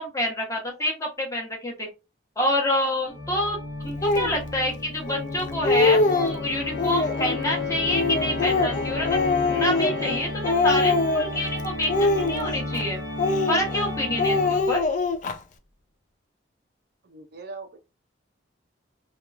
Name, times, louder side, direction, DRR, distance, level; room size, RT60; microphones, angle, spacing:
voice 1, 0.0-1.9 2.4-3.6 3.8-9.2 9.5-13.0 13.5-14.8, left 1 dB, 15° left, 0.8 m, -27 dB
Organ, 3.1-14.9, left 2 dB, 70° left, 1.0 m, -32 dB
Speech, 4.0-4.3 5.1-5.2 5.5-6.4 6.8-7.4 7.9-10.2 10.4-11.4 11.9-12.8 13.2-13.9 14.2-15.3, left 3 dB, 40° left, 0.3 m, -23 dB
voice 2, 17.0-17.8, right 3 dB, 55° right, 0.4 m, -41 dB
2.8 x 2.3 x 2.3 m
head